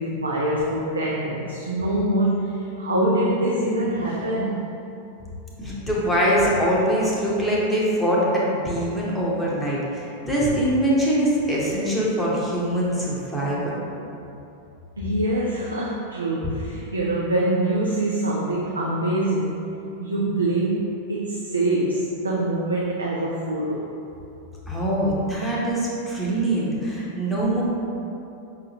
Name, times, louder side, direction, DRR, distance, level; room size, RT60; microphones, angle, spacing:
voice 1, 0.0-4.7 15.0-23.9, right 1 dB, 75° right, -4 dB, 0.4 m, -24 dB
voice 2, 5.6-13.8 24.7-27.6, equal, 10° left, -6 dB, 0.8 m, -23 dB
5.5 x 2.5 x 2.8 m, 2.8 s
figure-of-eight pair, 90°, 0 cm